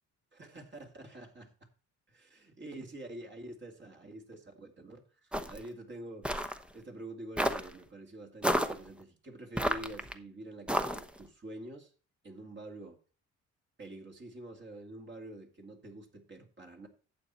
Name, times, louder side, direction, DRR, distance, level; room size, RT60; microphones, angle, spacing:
voice 1, 0.3-1.5 2.1-11.9 12.2-13.0 13.8-16.9, right 1 dB, 40° right, 2 dB, 2.4 m, -47 dB
sound 1, 5.3-5.7 6.2-6.6 7.4-7.7 8.4-8.8 9.6-10.1 10.7-11.2, equal, 5° right, 0.9 m, -30 dB
12.0 x 7.9 x 4.3 m, 0.37 s
cardioid pair, 90°, 30 cm